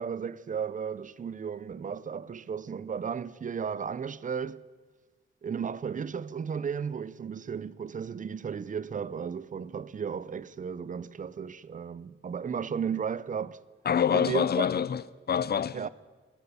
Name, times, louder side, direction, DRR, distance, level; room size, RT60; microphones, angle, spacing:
voice 1, 0.0-4.6 5.4-13.6 14.1-14.7 15.7-15.9, right 7 dB, 40° right, 0.4 m, -34 dB
voice 2, 13.9-15.8, left 8 dB, 50° left, 0.5 m, -26 dB
14.0 x 13.5 x 7.0 m
wide cardioid pair, 155°, 21 cm